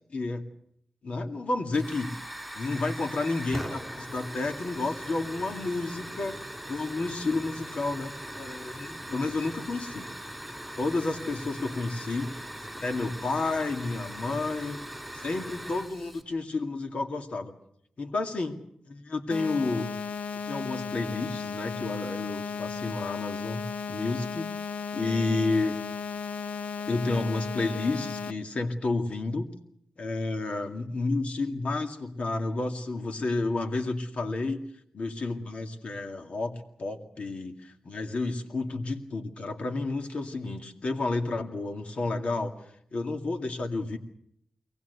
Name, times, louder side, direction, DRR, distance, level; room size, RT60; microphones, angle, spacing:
voice 1, 0.1-0.4 1.0-2.1 2.5-6.4 6.7-10.1 10.8-14.8 15.2-17.5 18.0-18.6 18.9-20.0 20.5-23.6 23.9-24.5 24.9-25.8 26.9-29.5 30.0-34.7 34.9-36.5 36.8-42.5 42.9-44.0, left 3 dB, 60° left, 5 dB, 2.3 m, -31 dB
Hiss / Fire, 1.7-16.2, equal, 5° left, 4.2 m, -40 dB
sound 1, 19.3-28.3, left 6 dB, 85° left, 0.9 m, -35 dB
23.0 x 18.5 x 8.2 m, 0.72 s
wide cardioid pair, 100°, 2 cm